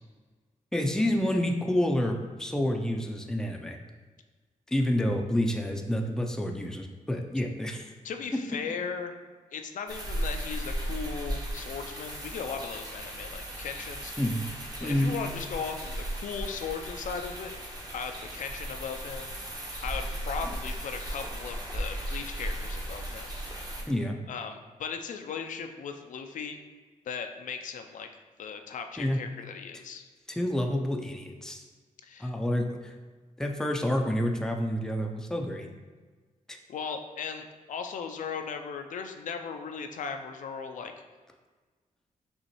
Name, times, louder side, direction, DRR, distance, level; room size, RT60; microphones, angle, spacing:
voice 1, 0.7-3.8 4.7-7.9 8.3-8.4 14.2-14.5 14.8-15.1 20.4-20.5 23.9-24.2 29.0-29.2 30.3-31.6 32.2-32.9 33.4-35.7 36.5-36.6, left 1 dB, 5° left, 2 dB, 0.4 m, -28 dB
voice 2, 8.0-9.2 9.5-14.1 14.8-17.5 17.9-19.4 19.8-23.4 24.3-26.6 27.1-28.1 28.4-30.1 32.0-32.3 36.7-40.9, left 6 dB, 75° left, 6 dB, 0.4 m, -37 dB
sound 1, 9.9-23.8, right 1 dB, 30° right, 1.0 m, -36 dB
5.5 x 3.1 x 3.0 m, 1.4 s
wide cardioid pair, 110°, 13 cm